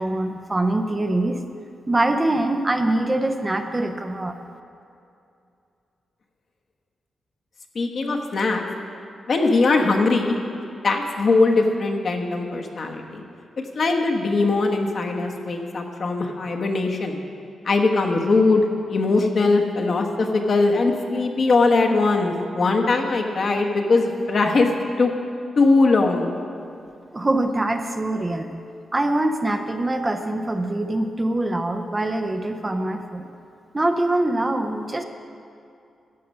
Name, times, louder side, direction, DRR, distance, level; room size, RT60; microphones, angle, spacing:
voice 1, 0.0-1.4 1.9-4.3 27.1-28.5 28.9-33.3 33.7-35.0, right 1 dB, 20° right, 6 dB, 0.6 m, -23 dB
voice 2, 7.7-8.6 9.3-10.4 10.8-13.2 13.7-17.2 17.6-25.1 25.5-26.3, left 3 dB, 50° left, 2 dB, 1.1 m, -20 dB
13.5 x 8.2 x 5.4 m, 2.5 s
wide cardioid pair, 130°, 0 cm